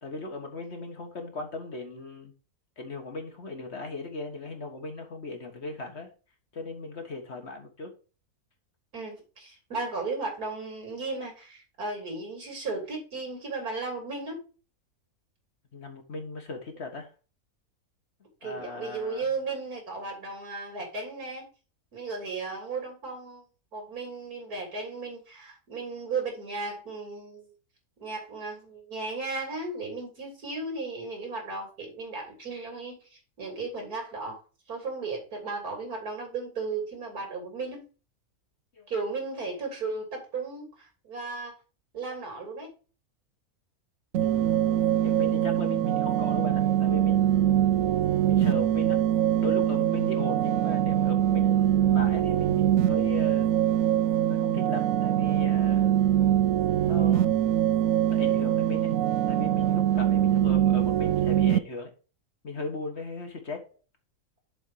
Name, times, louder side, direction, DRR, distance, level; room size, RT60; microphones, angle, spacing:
voice 1, 0.0-2.3 2.8-6.1 6.5-7.9 15.7-17.1 18.4-19.3 38.8-38.9 44.2-47.5 48.3-49.0 49.4-53.5 54.3-55.9 56.9-57.3 58.1-58.9 59.3-61.9 62.4-63.6, left 3 dB, 45° left, 1.7 m, -38 dB
voice 2, 8.9-14.4 18.4-21.5 21.9-23.4 23.7-27.5 28.0-34.4 34.7-37.8 38.9-41.5 41.9-42.7, right 3 dB, 85° right, 3.5 m, -35 dB
sound 1, 44.1-61.6, right 11 dB, 70° right, 0.9 m, -23 dB
7.1 x 4.4 x 6.5 m
omnidirectional pair, 1.6 m